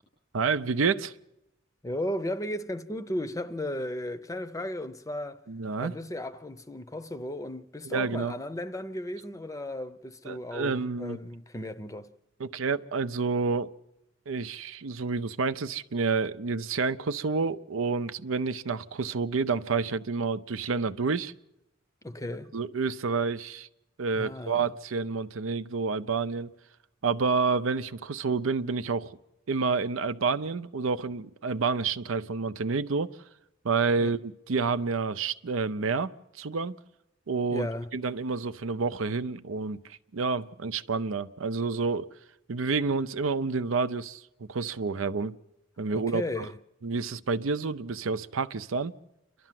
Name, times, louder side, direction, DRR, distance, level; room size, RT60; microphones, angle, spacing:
voice 1, 0.3-1.1 5.5-5.9 7.8-8.4 10.3-11.2 12.4-13.7 14.3-21.3 22.5-23.7 24.0-26.5 27.0-29.2 29.5-33.1 33.6-36.8 37.3-37.7 37.9-42.1 42.5-45.3 45.8-46.5 46.8-48.9, right 4 dB, 80° right, 0.6 m, -29 dB
voice 2, 1.8-5.4 5.8-12.1 22.0-22.5 24.2-24.7 34.0-34.1 37.5-37.9 45.9-46.6, left 1 dB, 15° left, 0.7 m, -35 dB
29.0 x 12.0 x 7.6 m
head